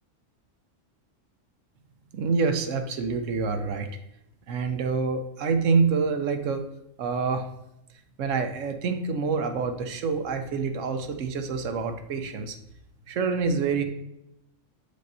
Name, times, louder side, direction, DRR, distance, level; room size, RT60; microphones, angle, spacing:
voice 1, 2.1-3.9 4.5-6.6 7.0-7.5 8.2-12.6 13.1-13.8, right 5 dB, 75° right, 7 dB, 1.0 m, -26 dB
8.5 x 5.1 x 2.6 m, 0.83 s
omnidirectional pair, 1.3 m